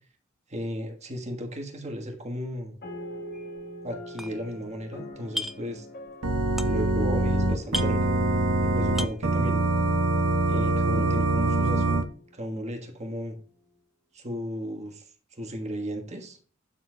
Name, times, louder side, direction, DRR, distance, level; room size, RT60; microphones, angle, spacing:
voice 1, 0.5-2.8 3.8-5.9 6.6-8.1 8.6-9.7 10.5-12.1 12.3-13.4 14.1-15.0 15.3-16.4, equal, 35° right, 3 dB, 1.4 m, -35 dB
sound 1, 2.8-12.6, left 1 dB, 50° left, 1.4 m, -43 dB
sound 2, 3.3-3.6 3.9-4.9 5.1-5.8 6.1-7.1 7.3-7.4 7.6-8.6 8.9-9.3, equal, ahead, 0.3 m, -35 dB
Organ, 6.2-12.0, right 2 dB, 85° right, 0.8 m, -24 dB
11.5 x 4.4 x 2.3 m, 0.44 s
head